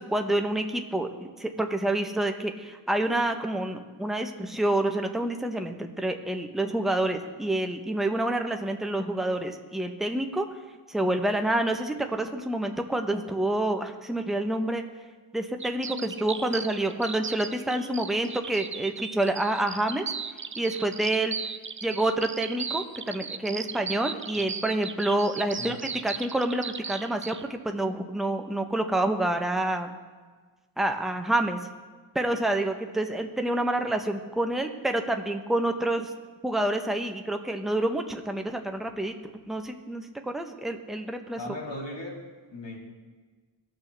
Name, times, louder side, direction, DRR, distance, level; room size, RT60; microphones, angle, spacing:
voice 1, 0.0-10.5 10.9-14.8 15.3-20.1 20.6-21.4 21.8-25.8 26.0-29.9 30.8-31.6 32.1-36.1 36.4-39.2 39.5-41.4, right 1 dB, ahead, 5 dB, 0.8 m, -28 dB
sound 1, 15.6-27.5, right 6 dB, 30° right, 0.4 m, -36 dB
voice 2, 41.4-42.1 42.5-42.8, left 1 dB, 65° left, -1 dB, 1.9 m, -38 dB
18.0 x 6.1 x 3.3 m, 1.4 s
wide cardioid pair, 65°, 47 cm